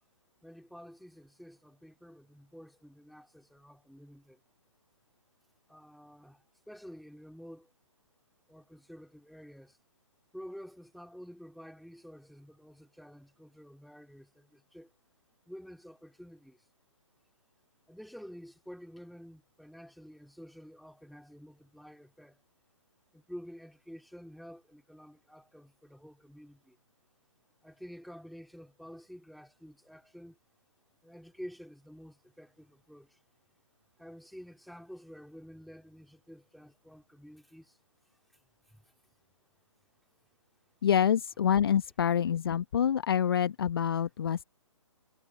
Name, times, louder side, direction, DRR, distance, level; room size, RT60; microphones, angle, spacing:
voice 1, 0.4-4.4 5.7-7.7 8.5-9.8 10.3-14.9 15.5-16.6 17.9-22.4 23.1-26.8 27.6-30.4 31.0-33.2 34.0-37.8 38.7-38.8, equal, ahead, 2.8 m, -50 dB
voice 2, 40.8-44.4, left 8 dB, 45° left, 1.1 m, -26 dB
figure-of-eight pair, 135°, 17 cm